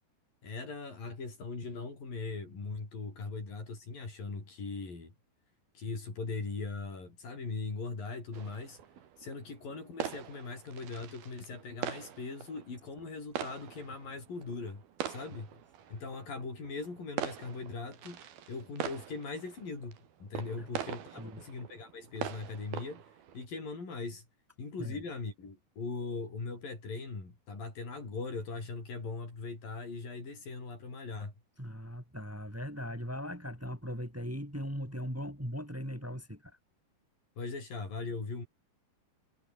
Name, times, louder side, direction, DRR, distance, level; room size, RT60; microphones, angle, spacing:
voice 1, 0.4-5.1 5.8-8.8 9.2-15.6 15.9-18.2 18.5-23.0 23.3-24.3 24.6-31.3 37.4-38.5, left 4 dB, 70° left, 9.3 m, -40 dB
sound 1, 8.3-23.5, right 9 dB, 90° right, 4.2 m, -43 dB
voice 2, 31.6-36.6, equal, 5° right, 5.5 m, -39 dB
omnidirectional pair, 4.2 m